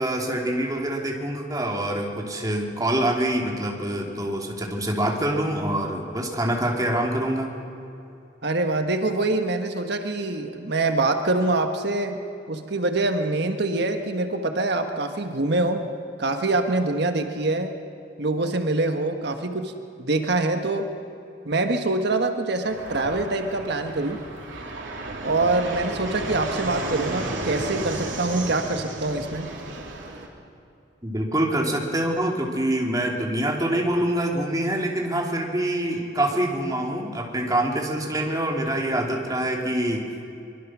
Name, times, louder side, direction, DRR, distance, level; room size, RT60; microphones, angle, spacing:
voice 1, 0.0-7.5 31.0-40.1, right 1 dB, 20° right, 0 dB, 3.0 m, -25 dB
voice 2, 8.4-12.2 12.5-15.9 16.2-17.7 18.2-19.7 20.0-20.9 21.4-24.2 25.2-29.5, right 2 dB, 60° right, 6 dB, 1.4 m, -24 dB
Fixed-wing aircraft airplane, 22.6-30.3, right 2 dB, 90° right, 3.4 m, -33 dB
24.5 x 23.0 x 6.2 m, 2.7 s
head